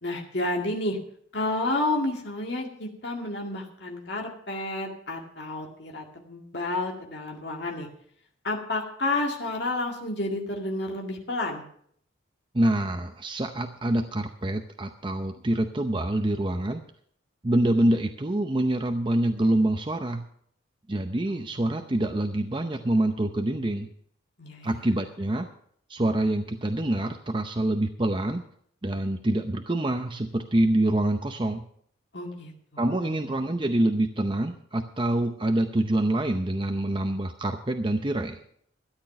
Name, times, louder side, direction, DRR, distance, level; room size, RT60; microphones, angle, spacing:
voice 1, 0.0-1.0 1.3-7.9 8.4-11.6 21.3-21.4 24.4-24.8 32.1-33.3, left 2 dB, 55° left, 0 dB, 2.0 m, -31 dB
voice 2, 12.5-16.8 17.4-20.2 20.9-23.9 24.6-25.5 25.9-28.4 28.8-31.6 32.8-38.4, right 1 dB, 25° right, 6 dB, 0.6 m, -26 dB
13.0 x 10.0 x 5.8 m, 0.64 s
head